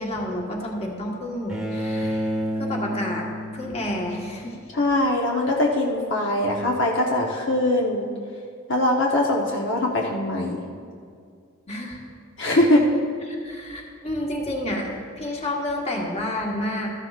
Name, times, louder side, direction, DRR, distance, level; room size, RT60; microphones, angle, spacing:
voice 1, 0.0-2.3 2.6-3.3 3.5-4.6 11.7-12.0 13.3-16.9, left 1 dB, 35° left, -1 dB, 1.4 m, -30 dB
Bowed string instrument, 1.5-4.6, equal, ahead, 1.1 m, -30 dB
voice 2, 4.7-8.1 8.7-10.7 12.4-12.9, left 1 dB, 65° left, -1 dB, 1.0 m, -22 dB
13.5 x 12.0 x 2.5 m, 2.2 s
head